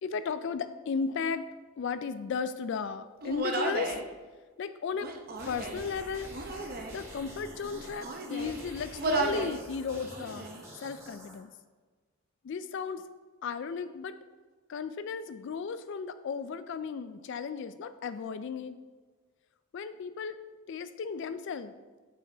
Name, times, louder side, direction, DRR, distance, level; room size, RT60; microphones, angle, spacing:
voice 1, 0.0-1.5 1.8-4.0 4.6-5.1 5.5-6.3 6.9-10.5 10.7-11.5 12.4-13.1 13.4-14.2 14.7-18.8 19.7-20.4 20.7-21.7, left 5 dB, 55° left, 12 dB, 0.3 m, -35 dB
Human voice, 3.2-4.0 4.9-5.9 6.3-7.0 7.6-8.6 9.0-9.6 9.9-10.6, right 3 dB, 40° right, 0.8 m, -34 dB
sound 1, 5.3-11.4, right 1 dB, 15° right, 2.2 m, -47 dB
8.6 x 6.5 x 3.4 m, 1.4 s
head